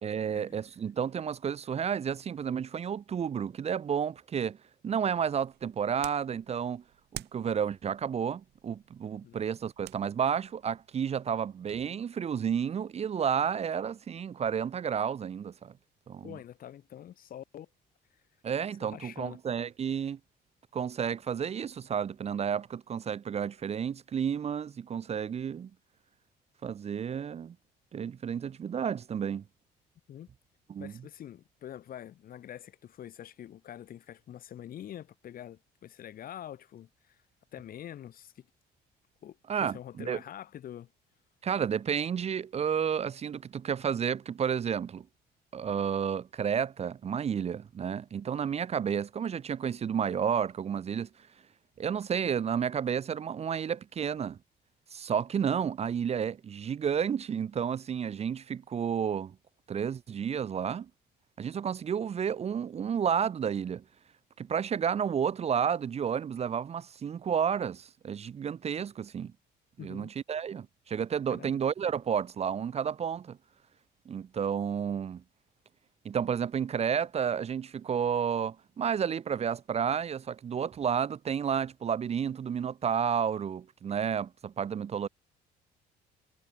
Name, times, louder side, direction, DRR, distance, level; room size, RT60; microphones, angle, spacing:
voice 1, 0.0-4.6 4.8-6.8 7.1-15.7 16.1-16.4 18.4-20.2 20.7-25.7 26.6-27.5 27.9-29.4 30.7-30.9 39.5-40.2 41.4-45.1 45.5-51.1 51.8-54.4 54.9-59.3 59.7-60.9 61.4-63.8 64.4-69.3 69.8-73.4 74.1-75.2 76.0-85.1, right 7 dB, 40° right, 1.0 m, -31 dB
sound 1, 5.1-11.9, right 16 dB, 80° right, 3.1 m, -51 dB
voice 2, 16.2-17.7 18.8-19.4 30.1-30.3 30.8-37.2 37.5-38.5 39.2-40.9 69.8-70.1 71.3-71.6, left 11 dB, 60° left, 7.0 m, -45 dB
cardioid pair, 110°, 17 cm